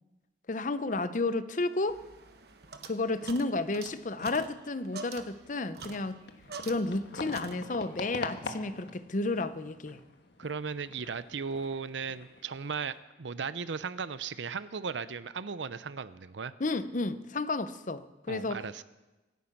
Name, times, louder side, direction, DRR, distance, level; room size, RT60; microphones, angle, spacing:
voice 1, 0.5-2.0 2.8-6.2 6.6-10.0 16.6-18.8, left 2 dB, 45° left, 13 dB, 0.7 m, -32 dB
sound 1, 1.9-7.1 7.3-8.0, right 4 dB, 60° right, 1.2 m, -46 dB
sound 2, 6.2-13.0, left 2 dB, 65° left, 1.4 m, -45 dB
voice 2, 10.4-16.5 18.3-18.8, right 5 dB, 80° right, 15 dB, 0.6 m, -36 dB
25.0 x 9.4 x 5.9 m, 1.1 s
head